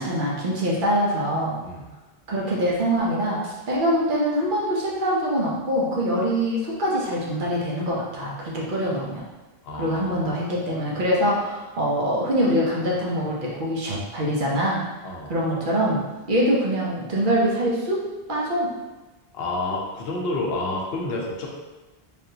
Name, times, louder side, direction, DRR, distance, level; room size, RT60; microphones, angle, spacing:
voice 1, 0.0-1.6 2.3-9.2 9.8-14.8 15.3-16.0 16.3-18.0 18.3-18.7, equal, 55° right, -4 dB, 0.8 m, -24 dB
voice 2, 9.6-10.3 15.0-15.3 19.3-21.5, left 2 dB, 70° left, -2 dB, 0.8 m, -29 dB
3.5 x 2.4 x 2.7 m, 1.2 s
omnidirectional pair, 1.1 m